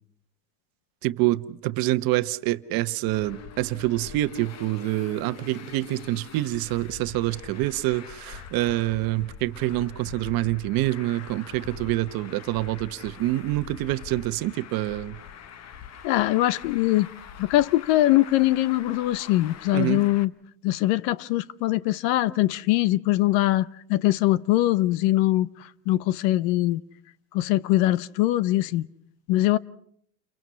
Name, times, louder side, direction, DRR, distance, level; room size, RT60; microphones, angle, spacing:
voice 1, 1.0-15.2 19.7-20.0, right 17 dB, 45° right, 1.2 m, -26 dB
Traffic noise roadway noise, 3.1-20.2, left 8 dB, 35° left, 1.2 m, -44 dB
voice 2, 16.0-17.1 17.4-20.3 20.6-26.8 27.3-28.9 29.3-29.6, left 16 dB, 55° left, 0.9 m, -22 dB
29.5 x 23.5 x 5.7 m
supercardioid pair, 125°, 47 cm